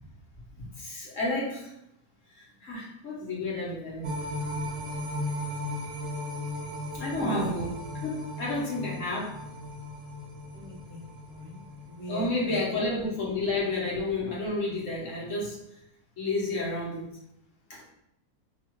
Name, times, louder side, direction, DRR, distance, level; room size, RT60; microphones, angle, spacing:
voice 1, 0.8-1.7 2.3-4.2 6.9-9.3 12.1-15.6 16.2-17.0 17.7-17.8, left 2 dB, 55° left, -5 dB, 1.5 m, -31 dB
sound 1, 4.0-12.4 12.8-12.9, left 1 dB, 65° right, 0.9 m, -36 dB
voice 2, 7.2-7.7 10.5-11.6 11.9-12.6, right 1 dB, 40° right, -8 dB, 0.6 m, -38 dB
5.2 x 2.4 x 3.0 m, 0.82 s
omnidirectional pair, 1.6 m